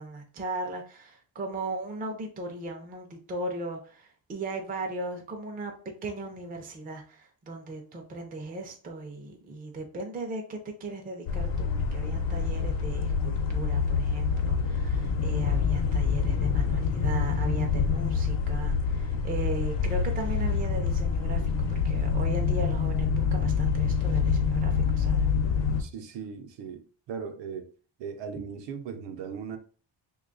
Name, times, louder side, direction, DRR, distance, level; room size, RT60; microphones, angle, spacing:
voice 1, 0.0-5.7 6.0-25.3 28.3-28.4, right 2 dB, 20° right, 0.4 m, -37 dB
sound 1, 11.3-25.8, left 6 dB, 65° left, 0.7 m, -26 dB
voice 2, 25.8-27.7 28.0-29.6, right 6 dB, 65° right, 0.6 m, -38 dB
3.0 x 2.3 x 3.8 m
cardioid pair, 175°, 47 cm